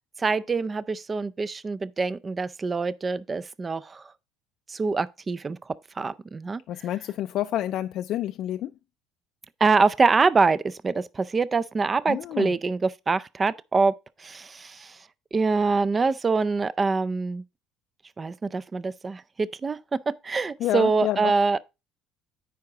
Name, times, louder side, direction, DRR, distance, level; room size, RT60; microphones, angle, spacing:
voice 1, 0.2-4.0 4.7-5.6 6.0-6.6 9.6-13.9 14.2-15.0 15.3-17.4 18.2-19.8 20.1-21.6, right 4 dB, 25° right, 0.4 m, -25 dB
voice 2, 6.7-8.7 12.1-12.5 20.6-21.3, left 13 dB, 60° left, 0.4 m, -29 dB
9.3 x 4.8 x 3.8 m
supercardioid pair, 100°, 0 cm